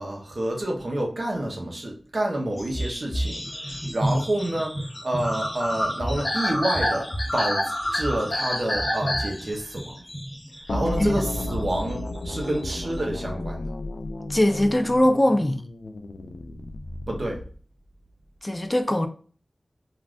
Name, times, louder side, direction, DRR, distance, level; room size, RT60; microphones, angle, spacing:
voice 1, 0.0-3.4 3.7-4.7 5.0-10.0 10.7-13.7 17.1-17.4, right 1 dB, 65° right, 0.8 m, -28 dB
sound 1, 2.6-13.0, equal, 40° left, 1.0 m, -29 dB
sound 2, 10.7-17.6, left 2 dB, 90° left, 0.3 m, -33 dB
voice 2, 14.3-15.6 18.4-19.1, left 1 dB, 20° left, 0.4 m, -21 dB
3.4 x 2.4 x 2.4 m
wide cardioid pair, 80°, 0 cm